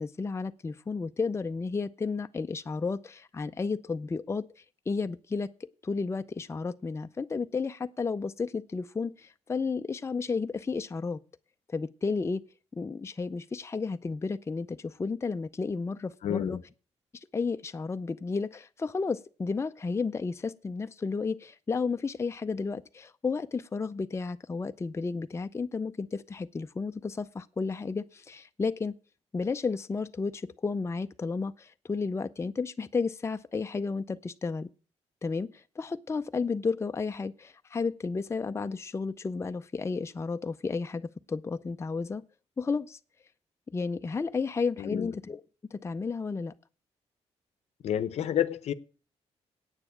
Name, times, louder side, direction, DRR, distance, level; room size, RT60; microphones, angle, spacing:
voice 1, 0.0-4.5 4.9-11.2 11.7-12.4 12.7-16.6 17.1-28.9 29.3-34.7 35.2-42.2 42.6-43.0 43.7-45.4 45.7-46.5, left 4 dB, 25° left, 0.5 m, -32 dB
voice 2, 16.2-16.6 44.8-45.1 47.8-48.7, left 10 dB, 70° left, 0.8 m, -29 dB
8.9 x 6.9 x 8.4 m
cardioid pair, 90°, 12 cm